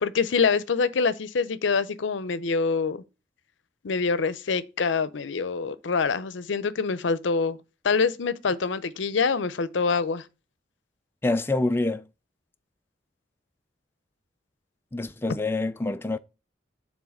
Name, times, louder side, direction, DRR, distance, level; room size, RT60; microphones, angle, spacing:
voice 1, 0.0-3.0 3.8-7.6 7.8-10.2, left 5 dB, 75° left, 0.6 m, -25 dB
voice 2, 11.2-12.1 14.9-16.2, left 2 dB, 10° left, 0.3 m, -26 dB
7.2 x 3.8 x 6.2 m
head